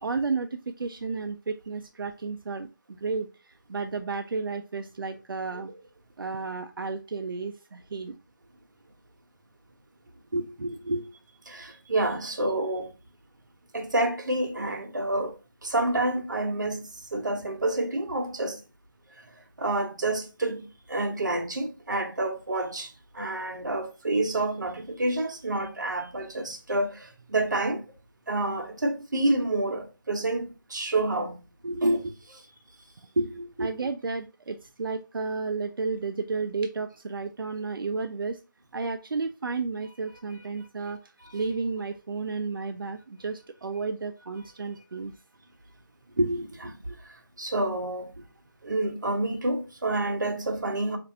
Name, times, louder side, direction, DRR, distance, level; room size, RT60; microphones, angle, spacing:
voice 1, 0.0-2.7 3.0-5.7 6.2-8.2 33.6-38.4 38.7-45.1, right 4 dB, 85° right, 0.4 m, -32 dB
voice 2, 10.3-11.1 11.5-12.9 13.7-18.6 19.6-27.8 28.3-31.4 31.6-32.4 33.2-33.7 41.2-41.3 46.2-47.1 47.4-48.2 48.6-51.0, right 2 dB, 60° right, 0.8 m, -28 dB
4.2 x 2.5 x 2.6 m
figure-of-eight pair, 175°, 11 cm